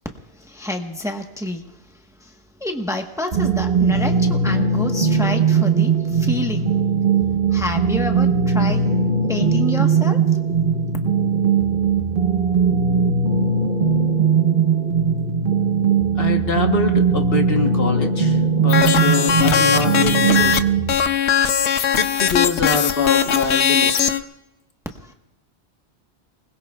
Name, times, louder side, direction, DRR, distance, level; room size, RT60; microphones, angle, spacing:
voice 1, 0.4-1.6 2.2-2.3 2.6-6.7 7.5-8.8 9.3-10.2 25.0-25.1, left 1 dB, 5° right, 3 dB, 1.1 m, -28 dB
sound 1, 3.3-20.9, right 5 dB, 55° right, 1.3 m, -19 dB
voice 2, 16.1-20.7 21.7-24.2, left 3 dB, 60° left, 3 dB, 1.5 m, -25 dB
sound 2, 18.7-20.6 20.9-24.2, left 8 dB, 80° left, 1.0 m, -19 dB
29.0 x 21.0 x 2.4 m, 0.92 s
omnidirectional pair, 1.1 m